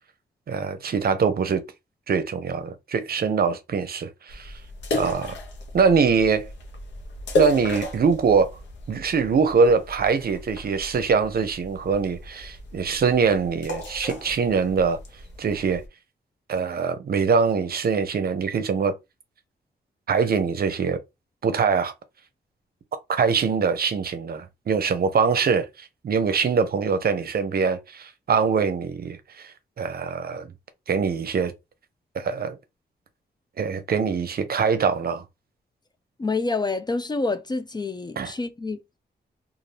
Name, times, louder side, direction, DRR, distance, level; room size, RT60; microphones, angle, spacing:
voice 1, 0.5-1.6 2.1-4.5 4.9-5.4 5.7-6.5 7.4-8.5 8.9-15.0 15.4-15.8 16.5-18.9 20.1-21.0 21.4-21.9 23.1-29.5 29.8-30.5 30.9-31.5 32.1-32.6 33.6-35.2 38.2-38.3, right 5 dB, 55° right, 0.6 m, -23 dB
sound 1, 4.3-15.9, left 2 dB, 85° left, 0.8 m, -34 dB
voice 2, 36.2-38.8, left 3 dB, 25° left, 0.4 m, -27 dB
2.6 x 2.5 x 3.1 m
cardioid pair, 85°, 18 cm